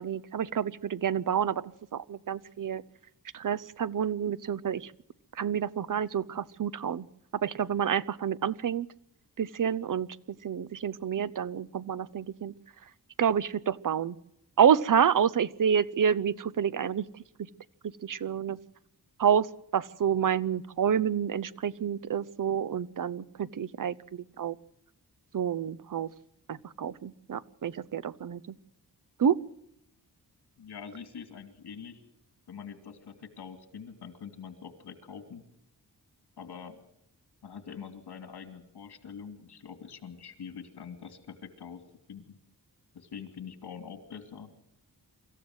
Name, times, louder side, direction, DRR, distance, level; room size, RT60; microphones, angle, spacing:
voice 1, 0.0-2.8 3.3-4.9 5.3-7.1 7.3-8.9 9.4-10.2 10.4-12.5 13.2-14.2 14.6-17.1 18.0-18.6 19.2-24.6 25.3-26.1 26.5-28.5 29.2-29.4, right 8 dB, 55° right, 18 dB, 0.7 m, -28 dB
voice 2, 30.6-32.0 32.5-35.4 36.4-36.8 37.4-41.8 42.1-42.3 42.9-44.5, left 7 dB, 75° left, 9 dB, 2.7 m, -44 dB
25.0 x 14.5 x 7.9 m, 0.80 s
wide cardioid pair, 145°, 39 cm